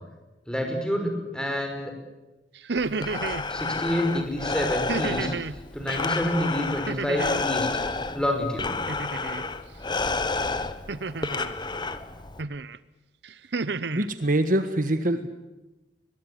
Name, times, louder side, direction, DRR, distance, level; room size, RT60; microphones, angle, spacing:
voice 1, 0.5-1.9 3.5-5.3 5.7-7.8 8.1-8.7, equal, 5° left, 4 dB, 5.3 m, -28 dB
sound 1, 2.6-3.5 4.9-5.6 6.9-7.5 8.9-9.5 10.9-11.5 12.4-12.8 13.2-14.1, right 4 dB, 65° right, 0.8 m, -31 dB
Breathing, 2.8-12.4, left 3 dB, 25° left, 1.2 m, -30 dB
voice 2, 13.9-15.3, right 1 dB, 50° right, 9 dB, 1.5 m, -24 dB
23.0 x 21.5 x 9.9 m, 1.1 s
head